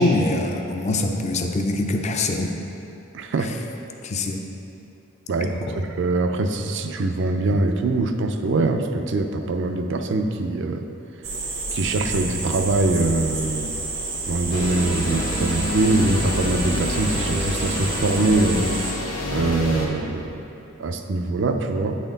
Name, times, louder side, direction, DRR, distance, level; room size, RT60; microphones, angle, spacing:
voice 1, 0.0-2.5 4.0-4.4 5.4-5.8, left 2 dB, 35° left, 3 dB, 0.5 m, -23 dB
voice 2, 3.1-3.5 5.3-10.9 11.7-13.7 14.3-18.7 19.3-20.3 20.8-22.0, right 2 dB, 60° right, 5 dB, 0.4 m, -23 dB
sound 1, 11.2-18.9, right 3 dB, 85° right, 1.1 m, -30 dB
sound 2, 14.5-19.9, left 1 dB, 75° left, 1.2 m, -27 dB
8.9 x 4.2 x 3.9 m, 2.8 s
head